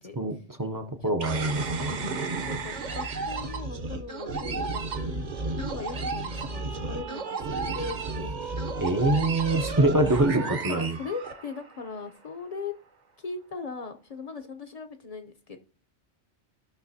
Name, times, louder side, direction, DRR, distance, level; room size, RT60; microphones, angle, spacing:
voice 1, 0.2-2.0 8.8-11.0, right 2 dB, 25° right, 6 dB, 0.5 m, -25 dB
sound 1, 1.2-11.8, right 3 dB, 45° right, 0.8 m, -32 dB
voice 2, 2.3-8.5 9.1-9.3 10.0-12.7 13.2-15.6, left 4 dB, 40° left, 7 dB, 0.7 m, -39 dB
15.0 x 5.8 x 2.7 m, 0.41 s
omnidirectional pair, 1.1 m